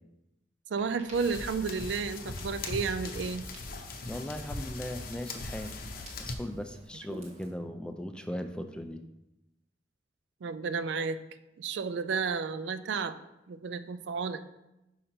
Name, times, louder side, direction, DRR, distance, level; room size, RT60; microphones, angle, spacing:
Ocean, 0.7-7.5, right 1 dB, 40° right, 1.1 m, -53 dB
voice 1, 0.7-3.5 10.4-11.2 11.6-13.1 13.5-14.4, right 5 dB, 80° right, 12 dB, 0.4 m, -32 dB
sound 1, 1.1-6.3, left 2 dB, 55° left, 0.6 m, -40 dB
voice 2, 4.1-9.0, left 1 dB, 5° left, 7 dB, 0.3 m, -38 dB
5.0 x 4.3 x 5.4 m, 0.93 s
head